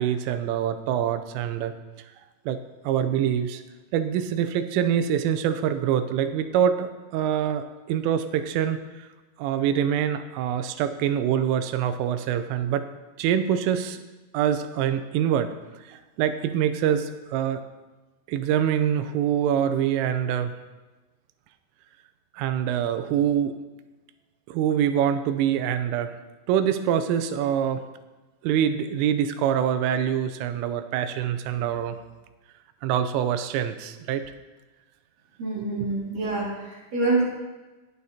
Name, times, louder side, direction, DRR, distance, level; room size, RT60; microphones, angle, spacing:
voice 1, 0.0-1.7 2.5-2.6 2.8-3.6 3.9-8.8 9.4-12.8 13.2-14.0 14.3-15.5 15.9-17.6 18.3-20.5 22.3-23.6 24.5-26.1 26.5-27.8 28.4-32.0 32.8-34.2 35.6-36.0, right 9 dB, 85° right, 10 dB, 3.3 m, -25 dB
voice 2, 35.4-37.2, right 3 dB, 50° right, -6 dB, 3.7 m, -26 dB
21.0 x 8.1 x 2.8 m, 1.2 s
omnidirectional pair, 5.7 m